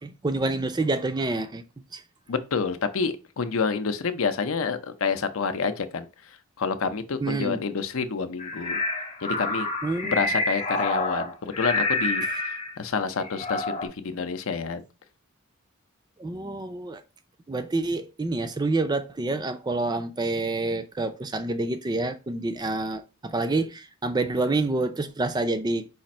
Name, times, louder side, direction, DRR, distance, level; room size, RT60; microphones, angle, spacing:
voice 1, 0.0-1.6 1.9-2.0 7.2-7.6 9.8-10.1 12.2-12.3 16.2-17.0 17.5-25.9, right 2 dB, 20° right, 0.4 m, -27 dB
voice 2, 2.3-6.1 6.6-8.8 9.2-9.7 10.0-14.8, left 5 dB, 65° left, 0.5 m, -28 dB
sound 1, 8.4-12.8 13.2-13.9, left 2 dB, 30° left, 0.7 m, -28 dB
5.0 x 2.5 x 4.2 m
head